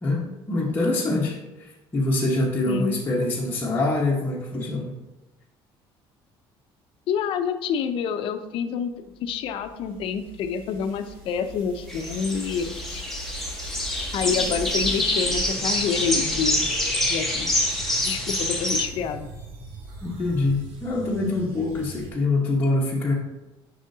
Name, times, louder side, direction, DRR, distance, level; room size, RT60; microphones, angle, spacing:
voice 1, 0.0-5.0 20.0-23.1, left 2 dB, 20° left, -5 dB, 1.1 m, -25 dB
voice 2, 2.6-3.0 7.1-8.9 9.2-13.0 14.1-16.7 17.1-17.7 18.0-19.3, left 6 dB, 65° left, 9 dB, 0.6 m, -28 dB
sound 1, 9.2-22.1, right 2 dB, 75° right, 1.3 m, -39 dB
sound 2, 11.9-18.8, left 1 dB, 5° left, 1.4 m, -26 dB
7.2 x 5.6 x 2.8 m, 1.0 s
cardioid pair, 130°, 10 cm